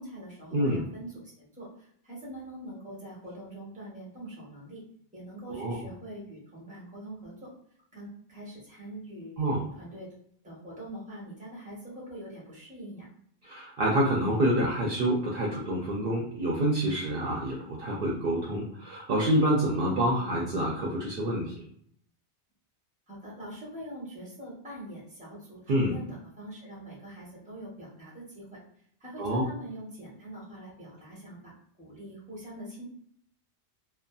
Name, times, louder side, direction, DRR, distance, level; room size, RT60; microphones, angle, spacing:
voice 1, 0.0-4.8 5.1-7.5 7.9-10.1 10.4-13.1 23.1-28.5 29.0-32.8, right 1 dB, 5° right, -5 dB, 0.9 m, -43 dB
voice 2, 0.5-0.8 5.5-5.8 9.4-9.6 13.4-21.5 25.7-25.9 29.2-29.4, right 1 dB, 60° right, -3 dB, 0.7 m, -27 dB
2.5 x 2.3 x 2.2 m, 0.66 s
omnidirectional pair, 1.2 m